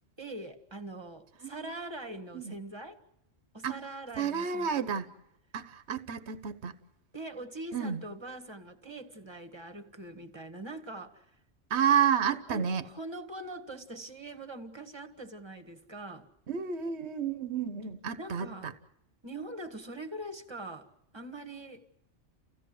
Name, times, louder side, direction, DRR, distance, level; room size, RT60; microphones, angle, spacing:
voice 1, 0.2-3.0 3.5-4.7 7.1-11.3 12.5-16.3 18.2-18.7 19.2-21.9, right 2 dB, 20° right, 1.7 m, -43 dB
voice 2, 1.4-1.7 2.3-2.5 3.6-3.8 4.2-5.1 5.5-6.7 7.7-8.0 11.7-12.8 16.5-18.7, right 7 dB, 60° right, 1.4 m, -30 dB
29.5 x 16.5 x 7.8 m
omnidirectional pair, 1.3 m